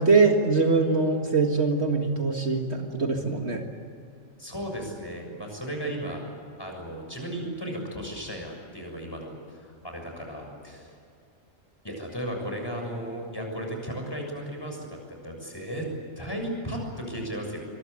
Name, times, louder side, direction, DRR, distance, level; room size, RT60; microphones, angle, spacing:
voice 1, 0.0-3.6, right 4 dB, 55° right, 3 dB, 2.1 m, -23 dB
voice 2, 4.4-6.2 6.6-10.9 11.8-15.0 15.2-15.9 16.2-17.7, equal, 15° left, 2 dB, 6.9 m, -35 dB
25.0 x 23.0 x 8.4 m, 2.4 s
omnidirectional pair, 1.4 m